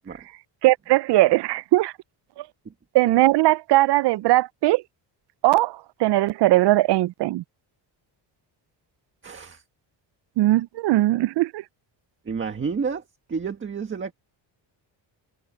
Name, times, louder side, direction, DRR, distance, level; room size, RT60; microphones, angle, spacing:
voice 1, 0.6-1.9 2.4-2.5 2.9-4.8 5.4-7.4 10.4-11.6, right 17 dB, 65° right, 0.5 m, -19 dB
voice 2, 9.2-9.6 12.2-13.0 13.3-14.1, right 5 dB, 25° right, 1.7 m, -30 dB
cardioid pair, 165°, 45 cm